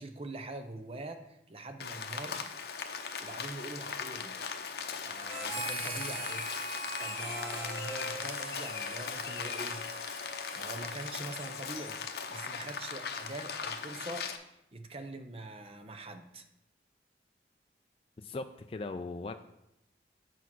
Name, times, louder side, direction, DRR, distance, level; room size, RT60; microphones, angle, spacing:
voice 1, 0.0-2.4 3.2-4.5 5.0-6.5 7.0-10.2 10.5-16.4, right 2 dB, 35° right, 7 dB, 0.7 m, -44 dB
Rain, 1.8-14.4, left 6 dB, 60° left, 0.7 m, -39 dB
Harmonica, 5.3-13.0, equal, 60° right, 3.4 m, -42 dB
voice 2, 18.2-19.3, left 3 dB, 30° left, 6 dB, 0.3 m, -39 dB
8.2 x 4.6 x 6.1 m, 0.86 s
head